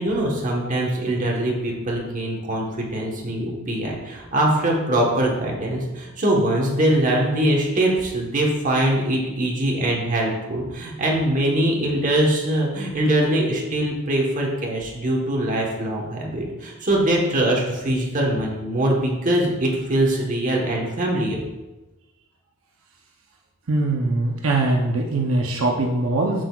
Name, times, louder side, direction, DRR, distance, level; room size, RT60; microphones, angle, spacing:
voice 1, 0.0-21.4, right 1 dB, 40° right, -1 dB, 1.3 m, -22 dB
voice 2, 23.7-26.4, right 2 dB, 80° right, 1 dB, 0.8 m, -22 dB
7.6 x 6.5 x 2.4 m, 1.1 s
head